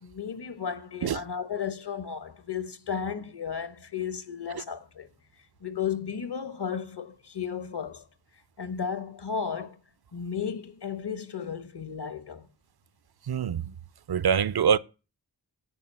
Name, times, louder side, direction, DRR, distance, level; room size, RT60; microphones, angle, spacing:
voice 1, 0.0-5.1 5.3-8.0 8.6-9.8 10.1-12.5, left 7 dB, 65° left, 1.2 m, -34 dB
voice 2, 13.3-13.7 14.1-14.8, right 7 dB, 60° right, 0.5 m, -24 dB
9.8 x 4.8 x 7.4 m
wide cardioid pair, 50°, 44 cm